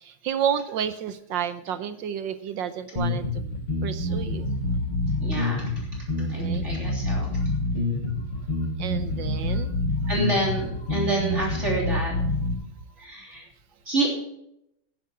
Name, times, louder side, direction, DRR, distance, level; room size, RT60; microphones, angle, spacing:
voice 1, 0.0-3.3 3.8-4.5 6.1-6.7 8.8-9.7, right 9 dB, 70° right, 12 dB, 1.3 m, -30 dB
sound 1, 3.0-12.6, left 2 dB, 90° left, 4.9 m, -27 dB
voice 2, 5.2-5.7 6.3-7.4 9.5-9.6 10.0-12.1 13.0-13.5 13.9-14.1, right 2 dB, 30° right, -2 dB, 3.5 m, -28 dB
10.5 x 10.5 x 5.9 m, 0.77 s
omnidirectional pair, 2.4 m